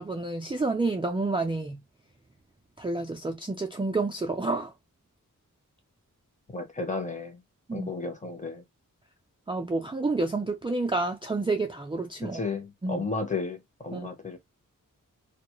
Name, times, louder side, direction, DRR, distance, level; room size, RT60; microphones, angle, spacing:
voice 1, 0.0-1.8 2.8-4.7 7.7-7.9 9.5-12.4 12.8-13.0 13.9-14.1, right 3 dB, 15° right, 0.4 m, -29 dB
voice 2, 6.5-7.4 7.7-8.6 12.2-14.4, left 3 dB, 20° left, 0.8 m, -33 dB
2.3 x 2.0 x 2.9 m
wide cardioid pair, 100°, 33 cm